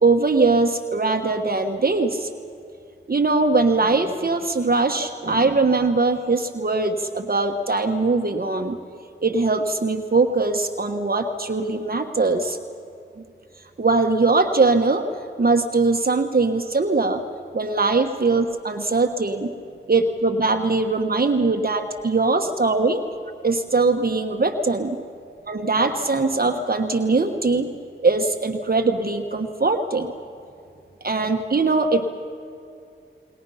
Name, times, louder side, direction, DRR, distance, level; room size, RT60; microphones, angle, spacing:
voice 1, 0.0-2.3 3.1-8.8 9.2-12.6 13.8-15.0 15.4-17.2 17.5-19.5 19.9-23.0 23.4-25.0 25.5-27.7 28.0-30.1 31.0-32.1, right 3 dB, 45° right, 5 dB, 1.3 m, -21 dB
30.0 x 21.0 x 5.7 m, 2.5 s
wide cardioid pair, 60°, 21 cm